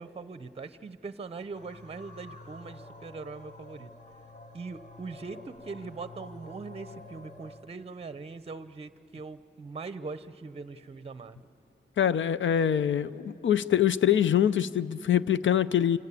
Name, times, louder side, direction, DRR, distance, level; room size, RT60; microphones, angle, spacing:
voice 1, 0.0-3.9 4.5-11.5, right 4 dB, 30° right, 13 dB, 0.7 m, -41 dB
sound 1, 1.5-7.7, left 2 dB, 40° left, 1.6 m, -49 dB
voice 2, 12.0-16.0, left 9 dB, 75° left, 16 dB, 0.6 m, -24 dB
27.0 x 26.0 x 8.4 m, 2.8 s
wide cardioid pair, 120°, 20 cm